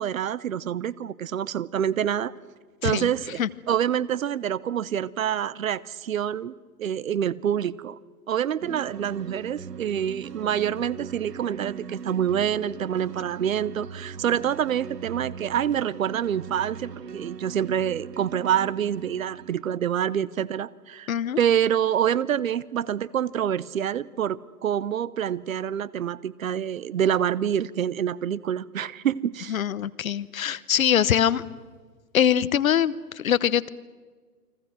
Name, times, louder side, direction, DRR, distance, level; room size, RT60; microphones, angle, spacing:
voice 1, 0.0-2.3 2.8-3.4 3.7-6.5 6.8-8.0 8.3-21.1 21.4-29.5, right 9 dB, 55° right, 20 dB, 1.0 m, -26 dB
sound 1, 8.6-19.8, right 6 dB, 80° right, 1.1 m, -40 dB
voice 2, 21.1-21.4 29.5-31.4 32.1-33.7, left 9 dB, 60° left, 18 dB, 1.1 m, -23 dB
29.5 x 23.0 x 6.4 m, 1.5 s
figure-of-eight pair, 130°, 47 cm